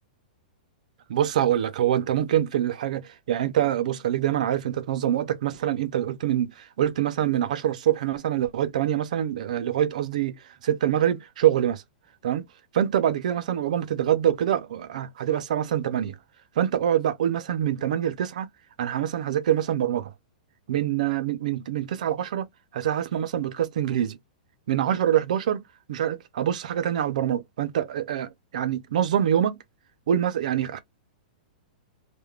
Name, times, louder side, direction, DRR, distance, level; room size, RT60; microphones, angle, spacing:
voice 1, 1.1-11.8 12.2-12.4 12.7-16.2 16.6-18.5 18.8-20.1 20.7-22.5 22.7-24.2 24.7-25.6 25.9-29.6 30.1-30.8, right 10 dB, 55° right, 0.5 m, -25 dB
2.3 x 2.1 x 3.1 m
supercardioid pair, 175°, 5 cm